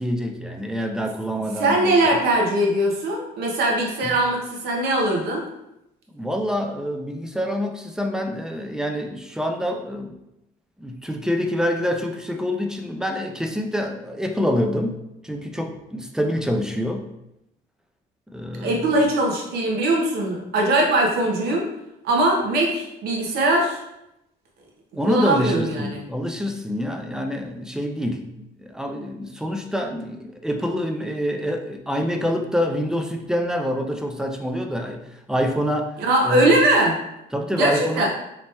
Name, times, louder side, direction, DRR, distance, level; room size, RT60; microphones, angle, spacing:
voice 1, 0.0-2.1 4.0-4.1 6.1-10.1 10.8-17.1 18.3-18.9 25.0-28.3 28.6-35.9 36.2-36.6 37.3-38.1, equal, 5° right, 4 dB, 0.4 m, -26 dB
voice 2, 1.6-5.4 18.6-21.7 22.0-23.8 25.1-26.0 36.0-36.9 37.5-38.1, right 1 dB, 70° right, 0 dB, 0.9 m, -21 dB
3.2 x 3.1 x 2.8 m, 0.86 s
cardioid pair, 110°, 17 cm